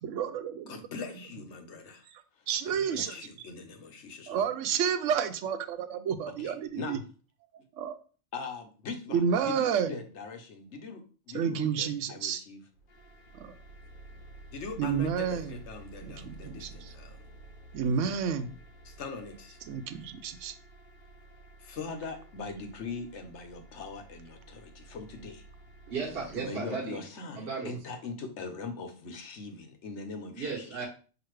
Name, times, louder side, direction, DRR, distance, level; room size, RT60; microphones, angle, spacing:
voice 1, 0.0-0.8 2.1-3.1 4.3-7.0 7.7-7.9 9.1-9.9 11.3-12.4 13.3-13.5 14.8-15.5 16.0-16.9 17.7-18.5 19.7-20.5, right 7 dB, 90° right, 10 dB, 0.9 m, -30 dB
voice 2, 0.7-2.1 2.4-4.4 5.9-6.0 6.4-7.0 8.3-12.6 14.5-17.2 18.8-19.6 21.6-25.4 26.4-30.6, left 4 dB, 70° left, 6 dB, 1.1 m, -41 dB
sound 1, 12.7-26.4, right 2 dB, 50° left, 0.7 m, -51 dB
voice 3, 25.9-27.0 27.4-27.7 30.4-30.9, right 5 dB, 55° right, -3 dB, 1.2 m, -35 dB
5.9 x 2.8 x 3.1 m, 0.38 s
omnidirectional pair, 1.2 m